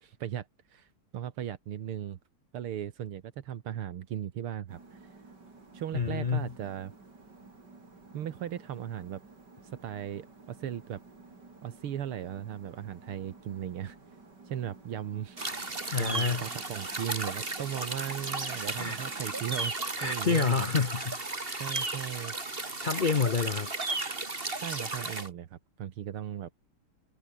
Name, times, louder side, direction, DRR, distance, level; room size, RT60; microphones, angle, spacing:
voice 1, 0.0-2.2 2.5-5.2 5.7-6.9 8.1-9.2 9.8-11.0 11.6-14.0 14.5-15.4 16.0-20.7 21.6-22.3 24.6-26.5, right 10 dB, 80° right, 2.2 m, -37 dB
Editing suite front, 4.7-19.7, right 3 dB, 50° right, 5.1 m, -53 dB
voice 2, 5.9-6.5 15.9-16.4 18.6-19.1 20.0-21.7 22.6-23.7, left 5 dB, 80° left, 0.4 m, -29 dB
sound 1, 15.4-25.3, right 3 dB, 25° right, 3.0 m, -35 dB
omnidirectional pair, 2.4 m